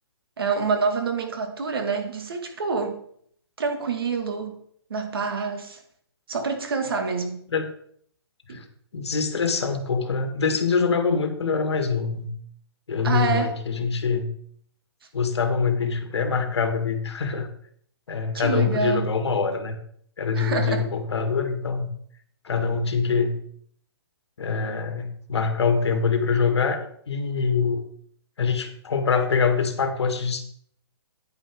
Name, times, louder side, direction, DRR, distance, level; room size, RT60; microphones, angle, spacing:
voice 1, 0.4-3.0 3.6-4.6 4.9-5.8 6.3-7.4 8.5-8.6 13.0-13.5 18.3-19.1 20.4-20.9, right 5 dB, 60° right, 5 dB, 2.2 m, -27 dB
voice 2, 8.9-12.3 12.9-14.3 15.1-17.5 18.1-19.8 20.2-21.9 22.4-23.3 24.4-27.8 28.4-30.5, left 5 dB, 85° left, 6 dB, 2.0 m, -24 dB
10.5 x 8.9 x 3.8 m, 0.64 s
hypercardioid pair, 175°, 14 cm